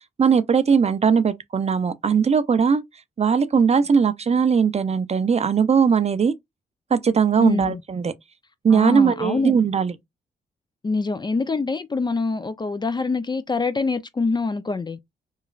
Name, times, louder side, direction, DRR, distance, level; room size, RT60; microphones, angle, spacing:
voice 1, 0.2-2.8 3.2-6.3 6.9-8.1 8.6-9.9, right 6 dB, 35° right, 0.4 m, -19 dB
voice 2, 7.4-7.8 8.7-9.5 10.8-15.0, left 3 dB, 25° left, 0.4 m, -25 dB
3.0 x 2.3 x 2.3 m
cardioid pair, 55°, 18 cm